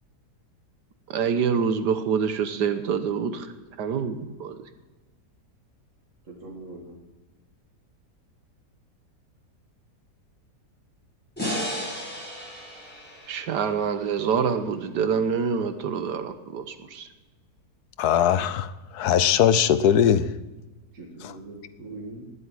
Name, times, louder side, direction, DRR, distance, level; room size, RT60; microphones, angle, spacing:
voice 1, 1.1-4.6 13.3-17.1, right 6 dB, 85° right, 1.7 m, -26 dB
voice 2, 6.2-7.0 20.9-22.2, right 2 dB, 50° right, 2.5 m, -41 dB
sound 1, 11.4-14.6, equal, 5° left, 5.8 m, -34 dB
voice 3, 18.0-20.3 21.2-21.3, left 9 dB, 75° left, 1.2 m, -20 dB
19.5 x 8.5 x 7.7 m
omnidirectional pair, 1.8 m